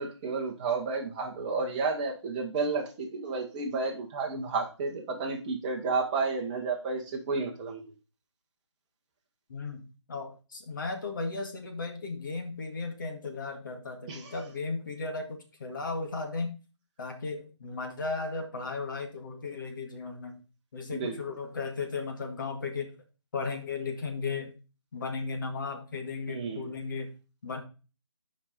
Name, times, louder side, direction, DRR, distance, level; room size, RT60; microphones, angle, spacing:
voice 1, 0.0-7.9 14.1-14.3 20.9-21.2 26.3-26.7, right 4 dB, 15° right, 1 dB, 1.3 m, -31 dB
voice 2, 9.5-16.5 17.0-20.4 20.7-22.9 23.3-24.6 24.9-27.1 27.4-27.6, left 4 dB, 45° left, 4 dB, 1.9 m, -35 dB
7.2 x 5.2 x 5.1 m, 0.32 s
figure-of-eight pair, 165°, 15 cm